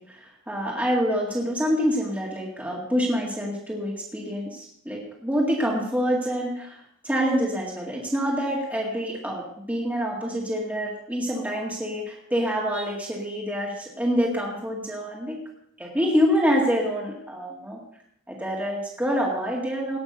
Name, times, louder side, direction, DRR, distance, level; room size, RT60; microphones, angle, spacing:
voice 1, 0.0-15.4 15.8-17.8 18.3-20.0, equal, 10° right, -3 dB, 1.9 m, -26 dB
18.0 x 6.1 x 6.7 m, 0.72 s
head